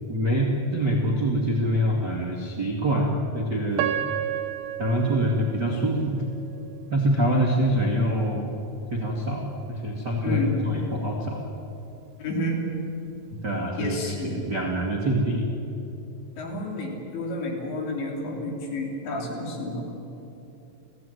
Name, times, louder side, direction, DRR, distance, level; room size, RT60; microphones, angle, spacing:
voice 1, 0.1-3.9 4.8-6.2 6.9-8.5 8.9-11.4 13.4-15.5, equal, 45° right, -1 dB, 1.3 m, -25 dB
Piano, 3.8-6.8 7.4-7.5 8.1-8.3, right 11 dB, 80° right, 3.3 m, -31 dB
voice 2, 10.2-10.6 12.2-12.7 13.8-14.5 16.4-19.8, left 1 dB, 65° left, 0 dB, 5.6 m, -30 dB
29.5 x 16.0 x 9.4 m, 3.0 s
omnidirectional pair, 5.7 m